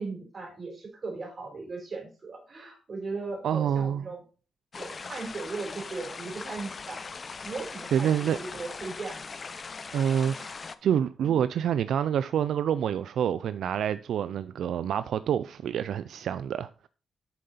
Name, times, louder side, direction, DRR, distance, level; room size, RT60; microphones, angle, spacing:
voice 1, 0.0-4.2 4.8-7.0 7.4-9.3 11.2-11.4, right 3 dB, 40° right, 3.8 m, -38 dB
voice 2, 3.4-4.0 7.9-8.4 9.9-10.5 10.8-16.9, right 9 dB, 80° right, 0.3 m, -27 dB
sound 1, 4.7-10.8, left 4 dB, 35° left, 0.5 m, -40 dB
7.6 x 6.7 x 4.2 m
cardioid pair, 130°, 0 cm